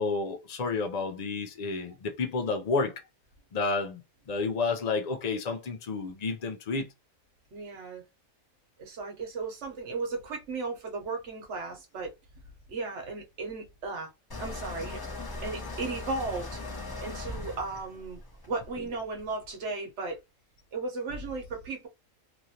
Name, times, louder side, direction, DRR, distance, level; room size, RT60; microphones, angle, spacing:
voice 1, 0.0-2.9 3.5-4.0 4.3-6.9, left 4 dB, 90° left, 0.3 m, -30 dB
voice 2, 7.5-8.0 8.8-12.1 12.7-14.1 14.4-15.0 15.4-16.6 17.0-18.2 18.5-20.2 20.7-21.9, right 3 dB, 60° right, 1.2 m, -35 dB
sound 1, 14.3-19.2, left 2 dB, 20° left, 0.6 m, -39 dB
3.0 x 2.5 x 2.8 m
omnidirectional pair, 1.4 m